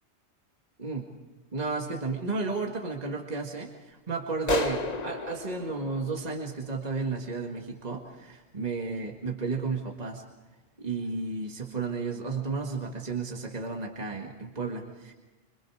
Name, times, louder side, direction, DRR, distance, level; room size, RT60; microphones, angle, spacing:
voice 1, 1.5-10.2 10.8-15.1, right 4 dB, 35° right, 1 dB, 2.0 m, -33 dB
sound 1, 4.5-7.1, left 3 dB, 35° left, 1.2 m, -33 dB
27.0 x 25.0 x 4.9 m, 1.1 s
omnidirectional pair, 1.2 m